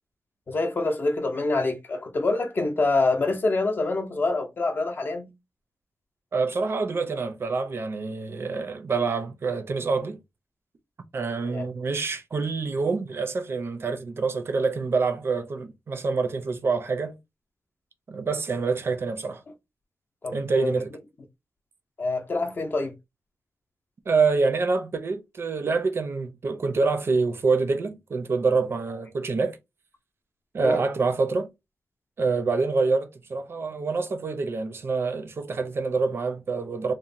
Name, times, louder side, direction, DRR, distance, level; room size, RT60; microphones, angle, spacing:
voice 1, 0.5-5.3 11.4-11.7 20.2-20.8 22.0-22.9 30.6-30.8, left 3 dB, 40° left, 0.6 m, -26 dB
voice 2, 6.3-10.2 11.1-17.2 18.1-19.4 20.3-20.9 24.1-29.6 30.5-31.5 32.2-36.9, right 4 dB, 50° right, 0.4 m, -26 dB
3.0 x 2.0 x 2.5 m
wide cardioid pair, 135°, 5 cm